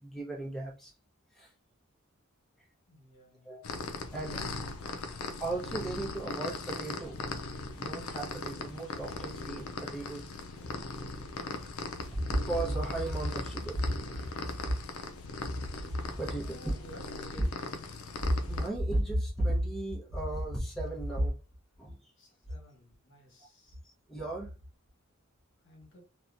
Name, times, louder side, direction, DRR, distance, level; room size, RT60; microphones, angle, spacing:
voice 1, 0.0-0.9 1.3-1.5 3.4-3.8 4.1-4.4 5.4-7.2 7.7-10.4 12.0-14.7 16.1-16.5 18.2-21.3 21.8-22.1 23.7-24.5, right 1 dB, ahead, 0.7 m, -34 dB
voice 2, 2.9-3.6 16.2-17.8 22.2-23.8 25.6-26.0, equal, 60° left, 1.1 m, -54 dB
sound 1, 3.6-18.7, left 3 dB, 80° left, 0.4 m, -39 dB
2.8 x 2.3 x 2.5 m
head